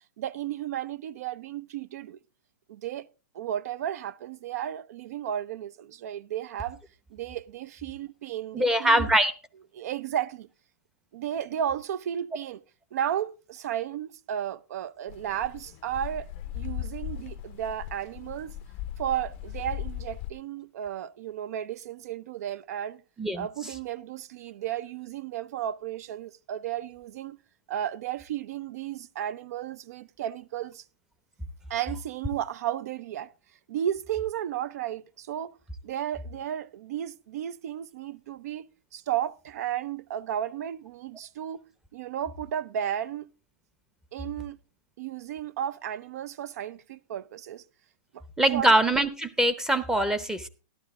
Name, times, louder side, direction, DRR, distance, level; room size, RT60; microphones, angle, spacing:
voice 1, 0.2-2.2 2.7-3.1 3.3-6.8 7.1-9.1 9.7-10.5 11.1-12.6 12.9-16.3 16.5-18.6 19.0-23.0 23.3-27.4 27.7-30.8 31.7-33.3 33.7-35.5 35.8-41.6 41.9-43.3 44.1-44.6 45.0-47.6 48.1-48.2 48.5-48.7, right 10 dB, 60° right, 0.6 m, -33 dB
voice 2, 8.5-9.3 23.2-23.5 48.4-50.5, right 1 dB, 5° right, 0.8 m, -23 dB
sound 1, 15.1-20.3, left 12 dB, 40° left, 0.5 m, -38 dB
12.5 x 11.5 x 3.6 m
hypercardioid pair, 140°, 10 cm